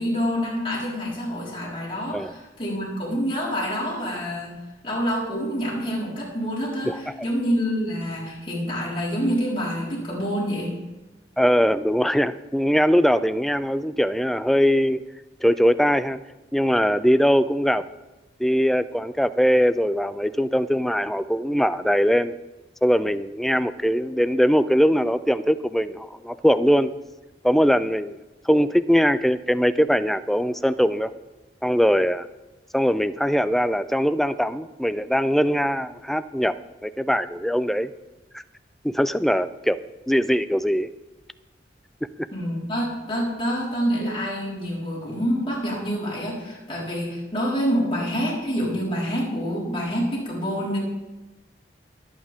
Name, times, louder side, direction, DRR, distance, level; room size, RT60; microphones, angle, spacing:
voice 1, 0.0-4.5 4.8-10.8 42.3-50.8, equal, 30° left, -6 dB, 4.4 m, -27 dB
voice 2, 11.4-15.0 15.4-16.2 16.5-17.8 18.4-22.3 22.8-26.9 27.4-28.2 28.4-31.1 31.6-32.3 32.7-36.5 36.8-37.9 38.3-38.4 38.8-39.8 40.1-40.9, equal, ahead, 12 dB, 0.3 m, -21 dB
21.5 x 8.7 x 3.6 m, 1.1 s
head